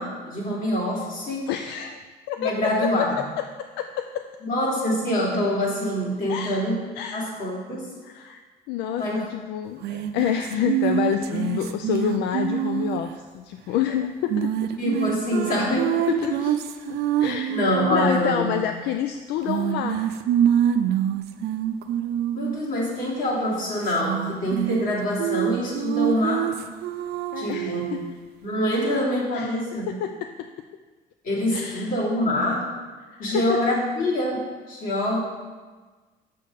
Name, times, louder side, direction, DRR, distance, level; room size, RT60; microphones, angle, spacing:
voice 1, 0.0-1.5 2.4-3.2 4.4-7.9 9.0-9.2 9.7-9.9 14.8-16.0 17.5-18.5 22.3-26.6 27.4-27.9 28.4-29.9 31.2-32.7 33.2-35.2, equal, 55° left, -5 dB, 2.9 m, -25 dB
voice 2, 1.5-2.0 2.3-3.1 3.8-4.2 6.3-6.6 7.0-7.2 8.0-8.4 8.7-14.5 16.1-16.6 16.9-17.5 17.8-20.1 27.3-28.1 28.7-29.0 29.3-30.5 31.5-31.9 33.1-33.8, left 10 dB, 85° left, 7 dB, 0.4 m, -28 dB
sound 1, 9.8-13.1 14.3-18.1 19.5-22.6 23.8-24.9 25.2-28.1, right 10 dB, 70° right, 0.5 m, -26 dB
6.6 x 6.5 x 5.2 m, 1.4 s
cardioid pair, 110°, 17 cm